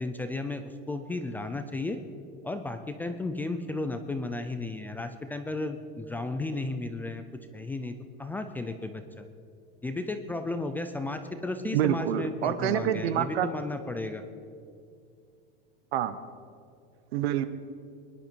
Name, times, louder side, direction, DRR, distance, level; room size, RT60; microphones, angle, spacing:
voice 1, 0.0-2.0 2.4-7.2 7.5-7.9 8.2-9.2 9.8-14.2, left 2 dB, 5° left, 8 dB, 0.3 m, -34 dB
voice 2, 11.7-13.5 15.9-16.2 17.1-17.5, right 10 dB, 85° right, 12 dB, 1.1 m, -27 dB
23.0 x 11.0 x 4.5 m, 2.4 s
supercardioid pair, 155°, 31 cm